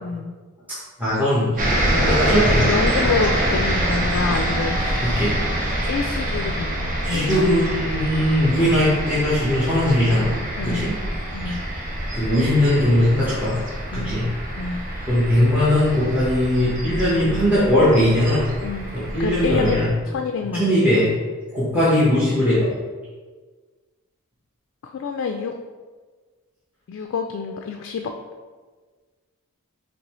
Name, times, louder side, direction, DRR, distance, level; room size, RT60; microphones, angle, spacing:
voice 1, 0.0-0.3 2.6-5.1 5.4-7.5 10.6-11.0 11.3-11.6 13.9-14.2 14.6-14.8 18.6-18.9 19.2-19.8 20.0-20.7 24.8-25.5 26.9-28.1, left 5 dB, 60° left, 4 dB, 0.3 m, -27 dB
voice 2, 1.0-2.7 5.0-5.3 7.0-10.4 10.6-10.9 11.4-13.6 13.9-14.2 14.6-14.7 15.1-18.5 18.9-19.9 20.5-21.1 21.5-22.7, left 1 dB, 10° right, -11 dB, 1.0 m, -20 dB
sound 1, 1.6-19.9, right 1 dB, 40° right, 0.9 m, -25 dB
5.3 x 3.1 x 3.0 m, 1.4 s
head